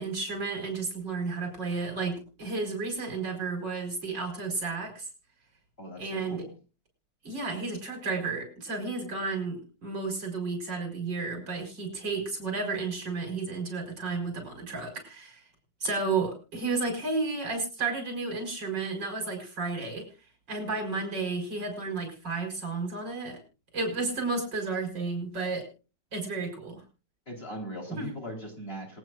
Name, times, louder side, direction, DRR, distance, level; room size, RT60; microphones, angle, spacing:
voice 1, 0.0-5.1 6.0-6.4 7.2-15.4 15.8-20.0 20.5-23.4 23.7-25.7 26.1-26.8 27.9-28.1, right 3 dB, 80° right, 4 dB, 5.6 m, -32 dB
voice 2, 5.8-6.5 27.3-29.0, equal, 30° left, 0 dB, 4.0 m, -39 dB
26.5 x 9.2 x 2.4 m, 0.34 s
omnidirectional pair, 1.9 m